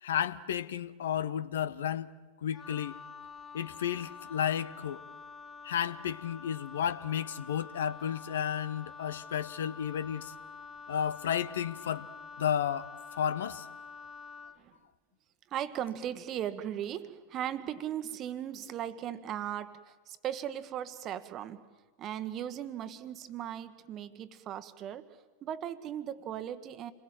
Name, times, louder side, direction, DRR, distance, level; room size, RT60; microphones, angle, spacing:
voice 1, 0.0-2.1 2.4-2.9 3.5-5.0 5.6-10.3 10.9-12.1 12.4-12.9 13.2-13.7, left 9 dB, 60° left, 16 dB, 0.8 m, -32 dB
Wind instrument woodwind instrument, 2.5-14.6, left 5 dB, 20° left, 1.8 m, -47 dB
voice 2, 15.5-21.7 22.0-26.9, right 10 dB, 30° right, 12 dB, 1.4 m, -38 dB
28.0 x 21.5 x 7.7 m, 1.3 s
figure-of-eight pair, 90°, 0 cm